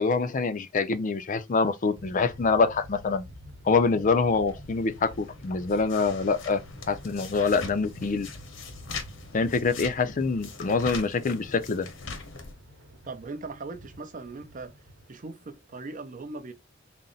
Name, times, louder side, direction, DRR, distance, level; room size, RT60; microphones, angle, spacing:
voice 1, 0.0-3.2 3.7-6.6 6.9-8.3 9.3-11.9, left 4 dB, 40° left, 0.4 m, -25 dB
sound 1, 2.0-15.9, equal, 65° right, 1.0 m, -48 dB
sound 2, 4.5-12.5, left 4 dB, 80° left, 0.9 m, -42 dB
voice 2, 13.1-14.7 15.1-16.5, right 3 dB, 40° right, 0.6 m, -39 dB
4.0 x 2.0 x 3.8 m
head